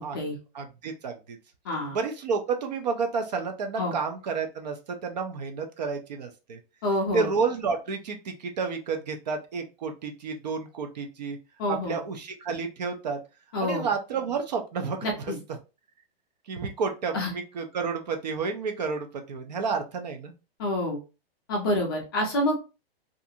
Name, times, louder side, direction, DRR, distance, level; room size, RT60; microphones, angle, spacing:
voice 1, 0.5-1.4 1.9-6.6 7.1-11.4 11.7-13.2 13.6-15.6 16.5-20.3, right 5 dB, 45° right, 5 dB, 0.4 m, -30 dB
voice 2, 1.7-2.0 3.8-3.9 6.8-7.3 11.6-12.0 13.5-13.9 15.0-15.4 17.1-17.3 20.6-21.0 21.5-22.6, left 1 dB, 25° left, 0 dB, 0.4 m, -27 dB
2.5 x 2.4 x 2.7 m, 0.30 s
supercardioid pair, 175°, 31 cm